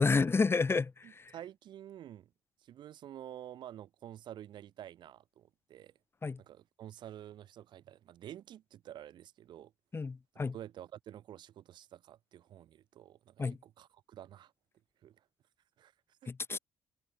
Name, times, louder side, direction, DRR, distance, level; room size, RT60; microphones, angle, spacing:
voice 1, 0.0-1.3 6.2-6.4 9.9-10.5 13.4-13.6 16.3-16.6, left 4 dB, 30° left, 0.9 m, -30 dB
voice 2, 1.0-2.3 2.6-5.9 6.4-9.7 10.3-14.5 15.0-15.2 15.8-15.9 16.2-16.6, right 11 dB, 65° right, 1.0 m, -50 dB
hypercardioid pair, 60°, 8 cm